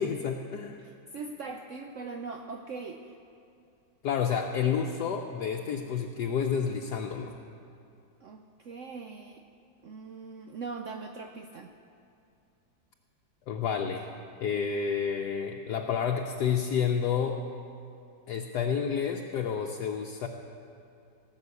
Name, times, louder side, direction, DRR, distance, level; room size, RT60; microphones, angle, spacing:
voice 1, 0.0-0.8 4.0-7.4 13.5-14.1 14.4-17.4 18.3-20.3, left 7 dB, 70° left, 2 dB, 1.2 m, -30 dB
voice 2, 0.8-3.2 8.2-9.4 9.8-11.7, right 4 dB, 80° right, 5 dB, 0.7 m, -41 dB
17.5 x 6.1 x 8.1 m, 2.6 s
omnidirectional pair, 2.0 m